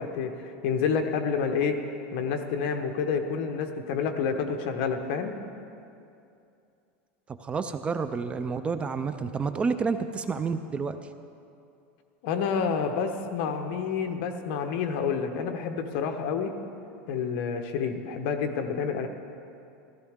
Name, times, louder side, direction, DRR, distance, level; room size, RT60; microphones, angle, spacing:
voice 1, 0.0-1.8 2.1-5.3 12.2-16.5 17.1-19.1, left 6 dB, 55° left, 5 dB, 1.1 m, -29 dB
voice 2, 7.3-11.0, right 5 dB, 15° right, 10 dB, 0.4 m, -29 dB
15.5 x 13.5 x 3.6 m, 2.6 s
supercardioid pair, 150°, 7 cm